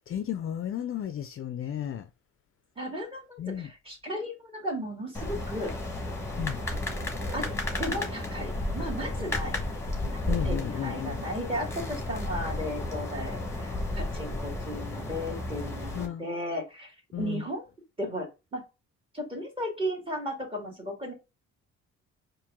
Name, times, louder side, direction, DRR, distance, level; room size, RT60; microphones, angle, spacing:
voice 1, 0.1-2.1 3.4-3.7 6.4-6.6 10.3-11.2 15.9-16.3 17.1-17.4, left 10 dB, 45° left, 0.5 m, -33 dB
voice 2, 2.8-5.7 7.3-7.5 7.8-9.6 10.1-17.7 18.0-18.6 19.1-21.1, equal, 20° right, 2.1 m, -35 dB
sound 1, 5.1-16.1, left 2 dB, 10° left, 1.4 m, -33 dB
4.5 x 2.6 x 3.6 m
cardioid pair, 90°, 30 cm